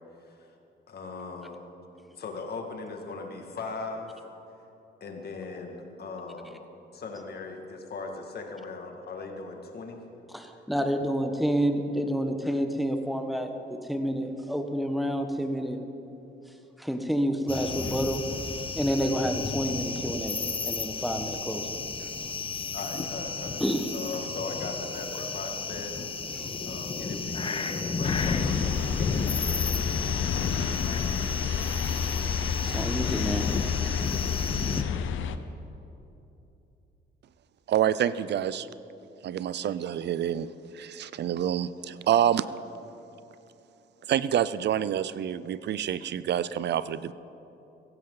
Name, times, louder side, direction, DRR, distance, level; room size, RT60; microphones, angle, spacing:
voice 1, 0.2-0.5 0.9-1.6 2.1-4.1 5.0-6.6 6.9-10.0 22.7-23.6 23.9-26.0 26.7-28.9, left 3 dB, 55° left, 2 dB, 2.2 m, -39 dB
voice 2, 10.3-15.8 16.8-18.2 18.7-20.4 20.6-21.7 22.4-22.5 23.6-23.8 32.6-33.5, equal, ahead, 5 dB, 1.3 m, -29 dB
sound 1, 17.5-34.8, left 4 dB, 25° left, 0.8 m, -33 dB
sound 2, 28.0-35.4, left 7 dB, 75° left, 0.7 m, -29 dB
voice 3, 37.7-38.7 39.2-40.5 40.7-42.5 44.1-47.1, right 10 dB, 60° right, 16 dB, 0.5 m, -27 dB
16.5 x 15.5 x 4.0 m, 2.9 s
cardioid pair, 90°, 20 cm